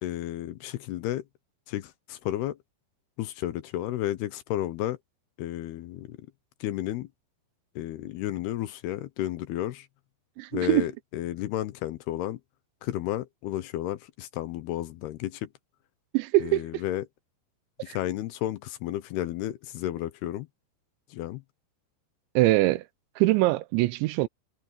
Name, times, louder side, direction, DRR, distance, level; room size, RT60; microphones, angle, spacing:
voice 1, 0.0-1.2 1.7-2.6 3.2-5.0 5.4-6.2 6.6-7.1 7.8-9.9 10.5-12.4 12.8-15.5 16.4-17.1 17.8-20.5 21.1-21.4, left 13 dB, 75° left, 2.7 m, -32 dB
voice 2, 10.4-10.9 16.1-16.8 17.9-18.0 22.4-22.8 23.2-24.3, right 17 dB, 90° right, 3.1 m, -23 dB
omnidirectional pair, 5.1 m